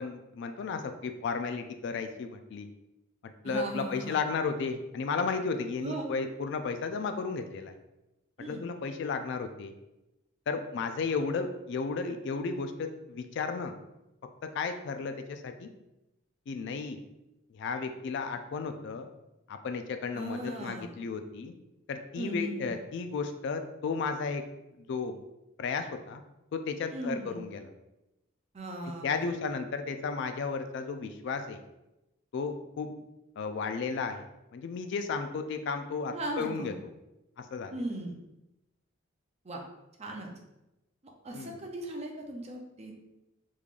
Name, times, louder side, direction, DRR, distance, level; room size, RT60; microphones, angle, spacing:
voice 1, 0.0-2.7 3.2-7.7 8.5-9.7 10.5-13.7 14.5-15.7 16.5-17.0 17.5-19.1 19.5-21.5 21.9-24.4 24.9-25.2 25.6-26.2 26.5-27.7 29.0-31.6 32.3-32.9 33.4-36.7 37.4-37.8 41.3-41.6, left 4 dB, 60° left, 8 dB, 0.3 m, -34 dB
voice 2, 3.4-4.2 5.8-6.1 8.4-8.6 20.1-20.9 22.2-22.7 26.9-27.4 28.5-29.2 36.1-36.8 37.7-38.2 39.4-39.6 40.0-40.3 41.2-42.9, right 1 dB, 30° right, 1 dB, 0.5 m, -37 dB
3.6 x 3.2 x 2.4 m, 0.94 s
head